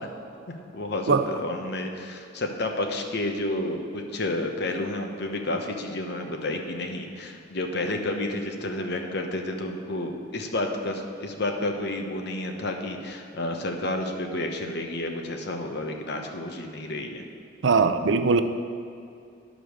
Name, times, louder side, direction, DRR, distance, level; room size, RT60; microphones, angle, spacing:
voice 1, 0.5-17.2, left 2 dB, 60° left, 4 dB, 1.0 m, -30 dB
voice 2, 17.6-18.4, right 4 dB, 75° right, 9 dB, 0.5 m, -20 dB
11.0 x 5.1 x 6.4 m, 2.5 s
head